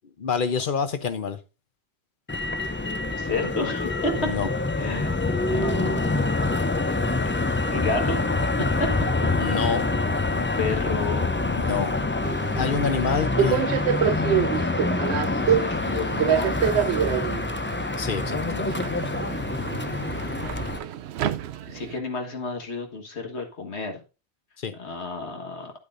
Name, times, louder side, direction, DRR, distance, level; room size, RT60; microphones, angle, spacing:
voice 1, 0.2-1.4 4.2-4.5 9.4-9.9 11.5-12.0 12.6-13.7 18.0-18.4 24.6-24.7, left 6 dB, 55° left, 1.0 m, -27 dB
Motor vehicle (road), 2.3-20.8, left 2 dB, 20° left, 0.3 m, -26 dB
voice 2, 3.1-4.3 4.8-5.2 5.5-6.2 7.7-8.2 8.6-8.9 9.4-9.7 10.3-12.1 15.4-17.5 18.3-18.9 21.7-24.0 24.7-25.7, left 3 dB, 90° left, 1.9 m, -32 dB
Subway metro underground, 12.2-22.0, right 9 dB, 80° right, 0.8 m, -27 dB
10.0 x 8.5 x 2.6 m
omnidirectional pair, 1.1 m